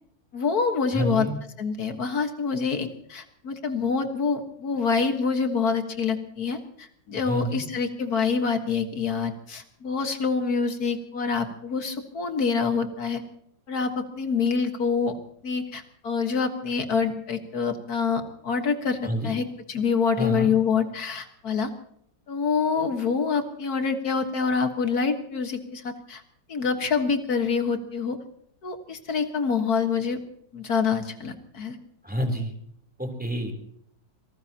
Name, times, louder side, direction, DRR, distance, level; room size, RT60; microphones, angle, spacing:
voice 1, 0.3-1.3 1.6-13.2 13.7-15.2 15.4-19.0 19.2-21.7 22.3-26.2 26.5-28.2 28.6-30.2 30.5-31.8, left 5 dB, 55° left, 6 dB, 2.0 m, -26 dB
voice 2, 0.9-1.3 7.1-7.6 19.0-19.4 20.2-20.5 32.0-32.5 33.0-33.5, equal, 5° right, 3 dB, 3.4 m, -28 dB
27.0 x 18.5 x 2.9 m, 0.69 s
omnidirectional pair, 2.0 m